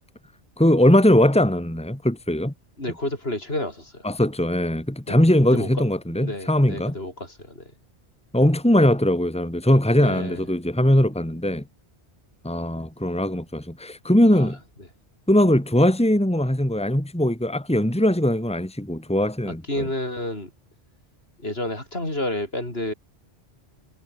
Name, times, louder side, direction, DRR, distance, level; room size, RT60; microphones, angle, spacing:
voice 1, 0.6-2.5 4.0-6.9 8.3-11.6 12.4-14.6 15.3-19.6, left 1 dB, 5° left, 2.4 m, -20 dB
voice 2, 2.8-4.1 5.1-5.7 6.1-7.7 9.9-10.5 14.3-14.5 19.5-20.5 21.4-22.9, left 1 dB, 65° left, 6.6 m, -30 dB
omnidirectional pair, 1.1 m